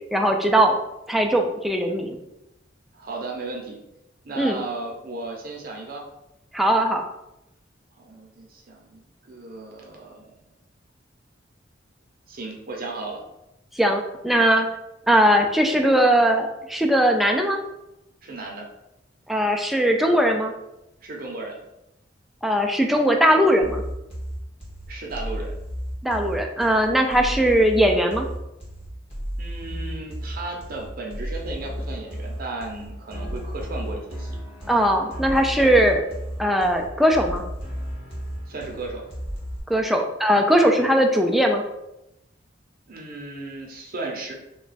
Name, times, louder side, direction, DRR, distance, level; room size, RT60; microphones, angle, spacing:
voice 1, 0.1-0.7 1.1-2.2 4.4-4.6 6.5-7.0 13.7-14.7 15.1-17.6 19.3-20.5 22.4-23.8 26.0-28.2 34.7-36.0 36.4-37.4 39.7-41.6, equal, ahead, 2 dB, 0.3 m, -19 dB
voice 2, 2.9-3.8 4.2-6.0 8.0-10.4 12.3-13.2 14.4-14.5 18.2-18.7 21.0-21.6 24.9-25.6 29.4-34.3 38.5-39.1 42.9-44.3, right 2 dB, 50° right, 0 dB, 0.6 m, -35 dB
sound 1, 23.6-39.6, equal, 30° left, 1.4 m, -34 dB
3.0 x 2.2 x 4.0 m, 0.88 s
head